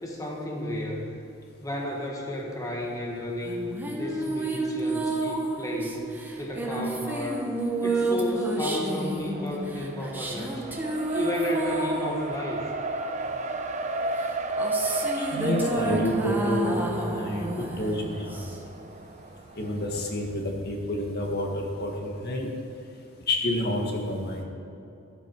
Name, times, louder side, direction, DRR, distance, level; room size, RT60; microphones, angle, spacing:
voice 1, 0.0-1.0 1.6-6.1 6.4-7.4 7.8-10.7 11.1-12.6, left 1 dB, 15° left, -1 dB, 1.5 m, -32 dB
sound 1, 3.4-13.3 14.2-18.9, right 2 dB, 10° right, 1.4 m, -30 dB
Race car auto racing, 9.1-20.1, right 2 dB, 35° right, 0.8 m, -34 dB
voice 2, 15.1-18.5 19.6-22.5 23.3-24.4, left 1 dB, 55° left, 1 dB, 1.8 m, -29 dB
13.5 x 12.0 x 4.7 m, 2.8 s
head